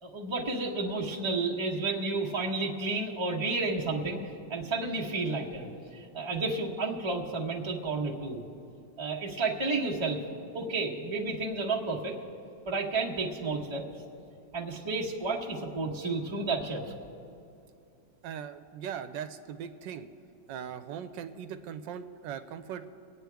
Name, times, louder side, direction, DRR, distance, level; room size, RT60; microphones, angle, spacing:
voice 1, 0.0-4.2 4.5-8.4 9.0-10.2 10.5-12.1 12.7-13.8 14.5-16.8, right 3 dB, 20° right, -3 dB, 1.1 m, -31 dB
voice 2, 18.2-20.1 20.5-22.9, right 8 dB, 85° right, 9 dB, 1.3 m, -39 dB
25.5 x 9.0 x 3.5 m, 2.6 s
omnidirectional pair, 1.9 m